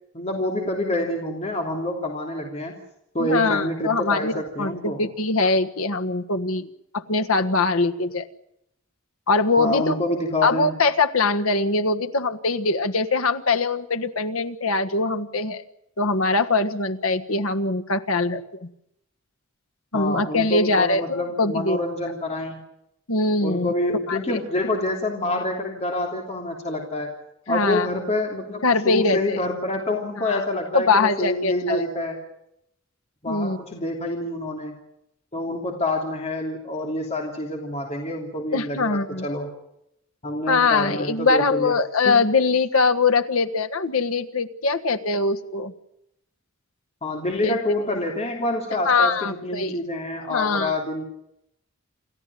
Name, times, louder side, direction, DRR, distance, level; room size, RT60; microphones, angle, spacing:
voice 1, 0.1-2.8 3.1-5.0 9.6-10.7 19.9-22.6 23.4-27.1 27.5-32.2 33.2-34.7 35.3-39.5 40.2-41.7 42.0-42.2 47.0-51.0, left 1 dB, 30° left, 1 dB, 3.0 m, -27 dB
voice 2, 3.2-6.7 6.9-8.3 9.3-10.0 10.4-15.6 16.0-18.7 19.9-21.8 23.1-23.7 24.1-24.4 27.5-27.9 28.6-29.4 30.2-30.4 30.7-31.8 33.3-33.6 38.5-39.3 40.5-45.7 47.4-48.0 48.8-49.8 50.3-50.7, left 3 dB, 90° left, 7 dB, 1.5 m, -22 dB
28.5 x 14.0 x 9.3 m, 0.80 s
head